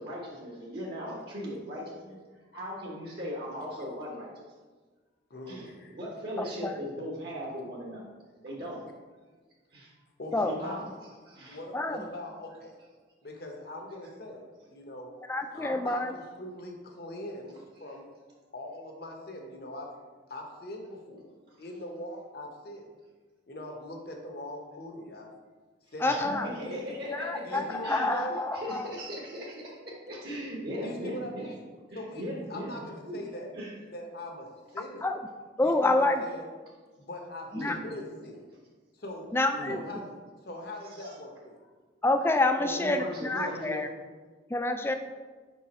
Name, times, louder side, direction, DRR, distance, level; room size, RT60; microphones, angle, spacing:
voice 1, 0.0-2.2 2.5-4.5 5.5-8.0 8.4-8.8 9.7-9.9 10.4-10.9 11.3-11.6 26.0-27.6 27.8-28.1 28.5-31.5 31.9-33.2 33.5-33.8 37.5-38.0 39.5-40.0 40.9-41.1 42.6-43.8, equal, 55° right, -3 dB, 1.1 m, -38 dB
voice 2, 5.3-5.9 10.2-10.9 11.5-12.7 13.2-14.4 14.7-15.1 15.5-18.0 18.5-19.9 20.3-21.3 21.6-22.9 23.5-25.3 25.9-26.9 27.4-28.4 30.8-31.6 31.9-33.5 33.9-34.5 34.7-35.1 35.6-36.5 37.0-38.4 38.9-39.3 39.7-40.1 40.4-41.6, left 1 dB, 55° left, 2 dB, 0.9 m, -41 dB
voice 3, 15.3-16.1 26.0-26.5 27.1-28.9 35.0-35.2 35.6-36.2 37.5-37.8 39.3-39.8 42.0-43.9 44.5-44.9, left 2 dB, 10° left, 7 dB, 0.3 m, -27 dB
5.1 x 4.6 x 4.2 m, 1.4 s
head